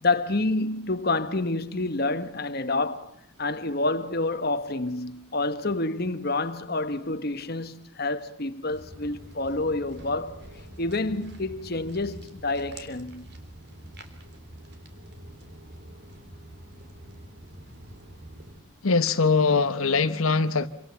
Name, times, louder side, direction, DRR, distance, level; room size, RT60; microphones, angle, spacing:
voice 1, 0.0-10.4 10.8-13.3, left 2 dB, 45° left, 1.3 m, -28 dB
Walk footsteps, 8.7-18.6, right 1 dB, 50° right, 3.4 m, -46 dB
voice 2, 18.8-20.7, left 4 dB, 75° left, 1.1 m, -22 dB
27.5 x 26.0 x 7.1 m
head